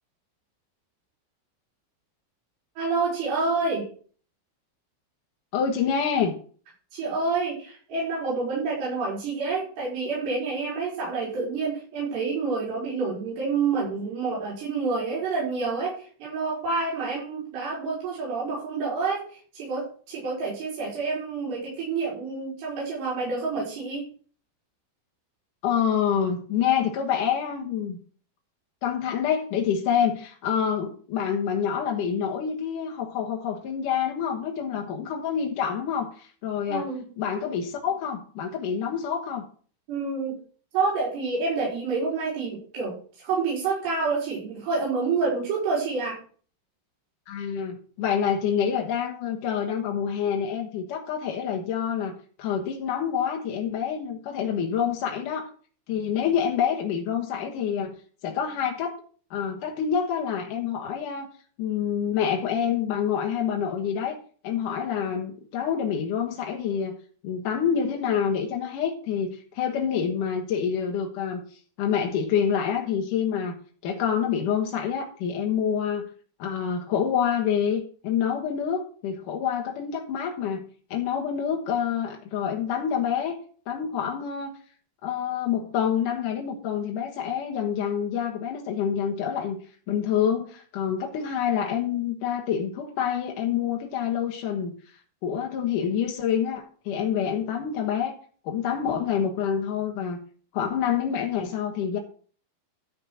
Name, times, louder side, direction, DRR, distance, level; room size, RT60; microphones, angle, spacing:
voice 1, 2.8-3.9 6.9-24.1 36.7-37.0 39.9-40.4 40.7-46.2, right 4 dB, 85° right, -6 dB, 6.6 m, -28 dB
voice 2, 5.5-6.3 25.6-28.0 28.8-36.9 37.2-39.4 47.3-55.5 55.9-57.9 58.2-59.0 59.3-61.3 61.6-64.2 64.4-67.0 67.2-73.6 73.8-76.1 76.4-80.7 80.9-83.4 83.7-84.5 85.0-89.6 89.9-94.7 95.2-98.2 98.4-100.2 100.5-102.0, left 8 dB, 65° left, 0 dB, 2.5 m, -27 dB
12.5 x 5.3 x 6.4 m, 0.43 s
omnidirectional pair, 4.7 m